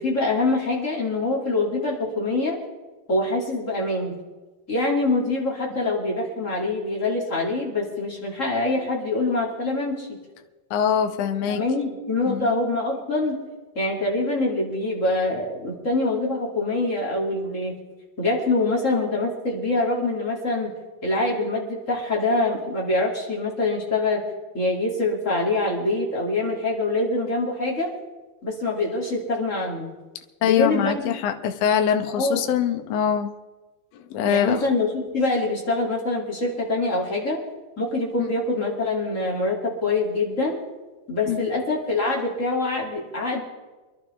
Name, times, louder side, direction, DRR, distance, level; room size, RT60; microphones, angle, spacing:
voice 1, 0.0-2.6 3.1-4.2 4.7-10.1 11.5-13.4 13.7-17.8 18.2-20.7 21.0-24.2 24.5-27.9 28.4-29.9 30.4-31.1 32.2-32.6 34.2-37.4 37.8-40.6 41.1-43.4, left 2 dB, 25° left, -3 dB, 2.3 m, -24 dB
voice 2, 10.7-11.6 12.3-12.5 30.4-33.3 34.1-34.6 38.2-38.3 41.3-41.5, left 8 dB, 90° left, 5 dB, 1.4 m, -23 dB
26.0 x 11.5 x 3.4 m, 1.2 s
omnidirectional pair, 4.2 m